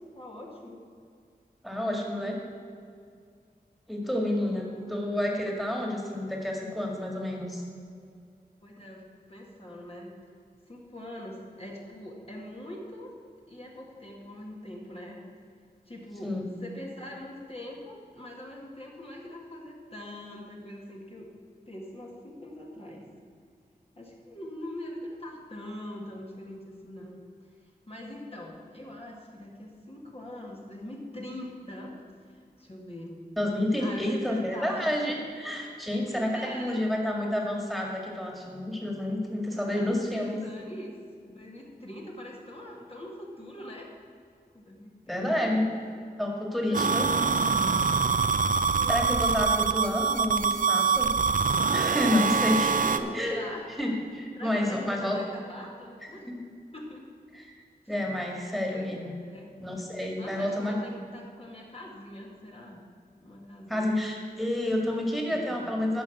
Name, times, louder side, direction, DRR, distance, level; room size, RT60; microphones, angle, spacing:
voice 1, 0.1-0.8 4.6-4.9 8.6-9.0 9.3-10.1 10.7-13.1 13.5-15.2 15.9-21.3 21.7-23.1 24.0-27.2 27.6-32.0 32.2-33.2 33.8-35.2 36.1-36.9 39.6-40.9 41.2-43.9 44.5-45.6 46.7-49.1 52.0-52.4 52.8-53.7 54.0-56.3 56.7-57.0 57.8-57.9 58.7-58.9 59.2-59.5 60.2-62.8 63.2-64.2 65.3-65.7, left 1 dB, 35° left, -2 dB, 1.8 m, -43 dB
voice 2, 1.6-2.4 3.9-7.6 16.2-16.4 33.4-40.4 45.1-45.7 46.2-47.1 48.9-51.1 51.7-52.7 53.1-53.4 53.8-55.2 57.3-57.5 57.9-59.2 59.6-60.7 63.7-66.0, left 1 dB, ahead, 0 dB, 2.0 m, -29 dB
sound 1, 46.7-53.0, right 5 dB, 55° right, 0.6 m, -25 dB
10.5 x 5.5 x 7.8 m, 2.2 s
wide cardioid pair, 55°, 16 cm